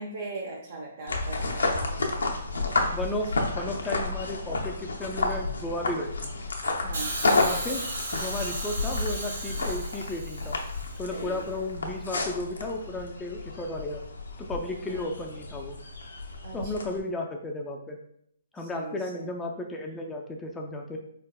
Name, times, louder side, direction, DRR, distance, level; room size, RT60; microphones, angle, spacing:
voice 1, 0.0-2.0 6.8-7.2 11.1-11.5 14.8-15.1 16.4-17.1 18.6-19.3, right 3 dB, 60° right, -2 dB, 0.6 m, -40 dB
sound 1, 1.1-17.0, left 3 dB, 80° left, 0.6 m, -31 dB
voice 2, 2.9-6.3 7.4-7.8 8.1-10.6 11.0-14.0 14.4-15.8 16.5-18.0 18.5-21.0, left 1 dB, 10° left, 1 dB, 0.4 m, -34 dB
Hiss, 6.9-11.1 12.1-12.2, right 2 dB, 85° right, 1.2 m, -36 dB
3.8 x 3.4 x 2.2 m, 0.71 s
hypercardioid pair, 135°, 0 cm